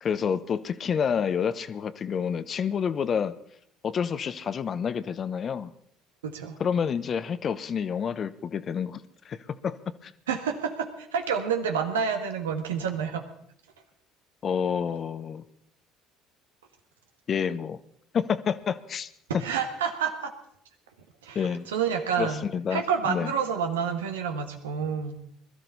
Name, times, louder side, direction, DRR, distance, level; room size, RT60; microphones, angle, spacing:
voice 1, 0.0-3.3 3.8-5.7 6.6-9.7 10.0-10.1 14.4-15.4 17.3-17.8 18.1-19.1 21.3-21.7 22.2-23.3, left 7 dB, 45° left, 14 dB, 0.9 m, -29 dB
voice 2, 6.2-6.6 10.3-13.2 19.4-20.3 21.2-21.4 21.7-25.2, right 7 dB, 85° right, 6 dB, 1.6 m, -29 dB
21.0 x 13.0 x 4.1 m, 0.68 s
hypercardioid pair, 65°, 0 cm